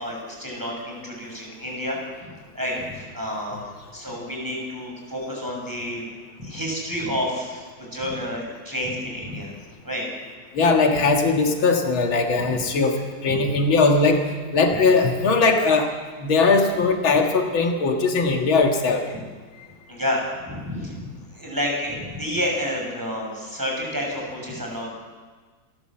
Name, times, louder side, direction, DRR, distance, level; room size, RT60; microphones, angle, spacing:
voice 1, 0.0-2.0 2.5-3.6 3.9-6.0 6.4-9.5 9.8-10.1 13.3-13.4 14.7-14.8 19.9-21.1 21.3-24.9, equal, 10° right, -1 dB, 6.5 m, -29 dB
voice 2, 10.5-15.9 16.2-19.1, left 3 dB, 85° left, 4 dB, 2.5 m, -20 dB
27.5 x 13.0 x 7.6 m, 1.4 s
omnidirectional pair, 2.1 m